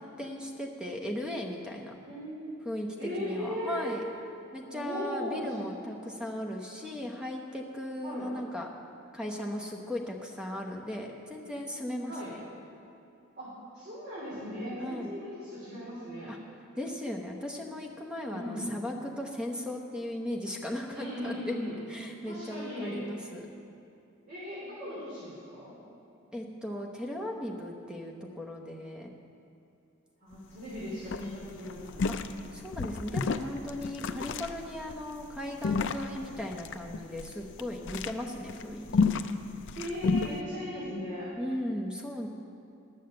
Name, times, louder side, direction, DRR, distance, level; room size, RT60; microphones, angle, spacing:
voice 1, 0.0-1.9 2.6-4.0 4.5-8.7 9.1-12.4 14.8-15.1 16.3-16.4 16.7-21.6 21.9-23.5 26.3-29.1 32.1-32.2 32.5-38.9 41.4-42.3, left 1 dB, 5° right, 1 dB, 0.9 m, -37 dB
voice 2, 2.1-2.5 3.0-3.9 4.7-5.7 8.0-8.3 12.1-12.3 13.3-16.3 18.3-18.7 20.9-21.8 22.2-23.0 24.3-25.7 30.2-32.0 32.3-32.5 39.7-41.3, equal, 50° right, -10 dB, 3.1 m, -38 dB
sound 1, 30.3-30.4 30.7-30.8 31.1-40.4, left 4 dB, 60° left, 0.4 m, -31 dB
11.5 x 6.5 x 7.6 m, 2.6 s
head